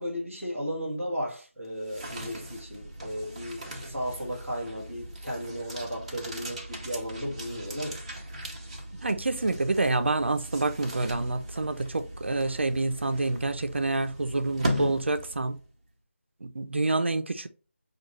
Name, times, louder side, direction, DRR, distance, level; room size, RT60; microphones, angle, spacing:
voice 1, 0.0-8.0, equal, ahead, 0.4 m, -35 dB
sound 1, 1.6-15.7, equal, 30° right, 0.8 m, -38 dB
voice 2, 9.0-15.6 16.4-17.5, right 2 dB, 60° right, 0.6 m, -27 dB
5.0 x 2.4 x 3.1 m
figure-of-eight pair, 175°, 7 cm